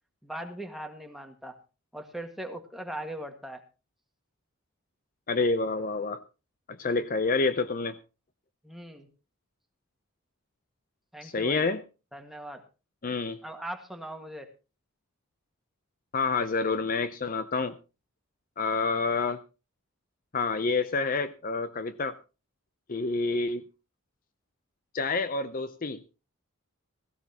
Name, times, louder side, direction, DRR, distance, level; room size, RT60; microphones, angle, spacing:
voice 1, 0.2-1.6 1.9-3.6 8.6-9.1 11.1-11.7 12.1-12.6 13.4-14.5, right 1 dB, ahead, 4 dB, 1.7 m, -40 dB
voice 2, 5.3-6.2 6.7-8.0 11.2-11.8 13.0-13.4 16.1-17.8 18.6-19.4 20.3-22.2 22.9-23.6 24.9-26.1, left 4 dB, 40° left, 12 dB, 0.6 m, -28 dB
16.5 x 16.0 x 2.9 m, 0.31 s
head